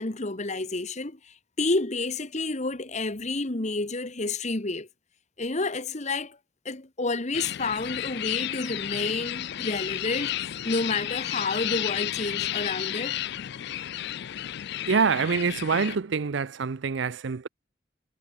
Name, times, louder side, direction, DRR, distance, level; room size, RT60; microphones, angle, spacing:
voice 1, 0.0-4.9 5.4-6.4 6.6-13.2, left 3 dB, 35° left, 1.4 m, -30 dB
sound 1, 7.3-16.0, left 12 dB, 55° left, 0.4 m, -32 dB
voice 2, 14.8-17.5, right 5 dB, 60° right, 0.5 m, -25 dB
head